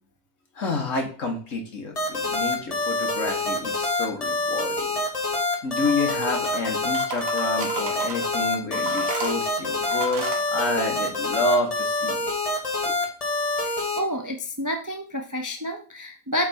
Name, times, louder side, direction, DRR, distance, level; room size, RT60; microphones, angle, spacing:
voice 1, 0.6-4.9 5.6-12.3 12.9-13.0, left 2 dB, 60° left, 2 dB, 1.8 m, -29 dB
sound 1, 2.0-14.0, left 2 dB, 25° left, 1.3 m, -26 dB
sound 2, 5.8-6.6 6.9-8.3 8.7-10.5, right 3 dB, 70° right, 1.5 m, -34 dB
voice 2, 14.0-16.5, equal, 25° right, 3 dB, 0.3 m, -29 dB
7.5 x 3.4 x 4.3 m, 0.39 s
omnidirectional pair, 1.5 m